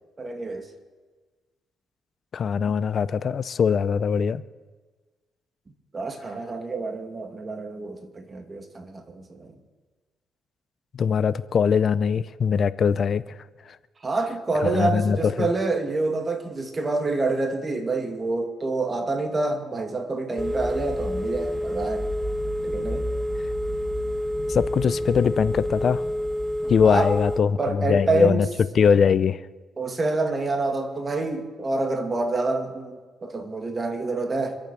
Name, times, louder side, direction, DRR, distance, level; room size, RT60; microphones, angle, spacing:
voice 1, 0.2-0.7 5.9-9.5 14.0-22.0 22.6-23.0 26.8-27.1 27.6-28.4 29.8-34.6, right 3 dB, 30° right, 6 dB, 2.1 m, -27 dB
voice 2, 2.3-4.4 10.9-13.2 14.6-15.5 24.5-26.0 26.7-28.5 28.7-29.4, left 6 dB, 50° left, 17 dB, 0.6 m, -21 dB
Telephone, 20.4-27.4, equal, 10° left, 1.4 m, -28 dB
25.5 x 8.7 x 6.1 m, 1.3 s
cardioid pair, 90°, 0 cm